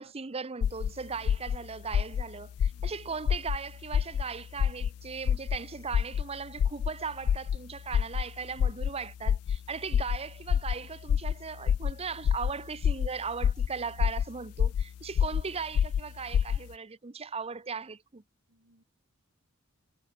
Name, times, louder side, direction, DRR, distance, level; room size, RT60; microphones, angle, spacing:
voice 1, 0.0-18.2, right 5 dB, 30° right, 0.7 m, -38 dB
sound 1, 0.6-0.9 1.2-1.6 1.9-2.2 2.6-2.9 3.3-3.6 3.9-4.2 4.6-4.9 5.3-5.6 5.9-6.2 6.6-6.9 7.2-7.6 7.9-8.2 8.6-8.9 9.3-9.6 9.9-10.2 10.5-10.7 11.1-11.3 11.7-11.9 12.2-12.5 12.8-13.1 13.4-13.7 14.0-14.2 14.6-14.8 15.1-15.4 15.7-16.0 16.3-16.6, left 8 dB, 75° left, 0.3 m, -26 dB
voice 2, 18.5-18.8, right 1 dB, 65° right, 5.4 m, -64 dB
head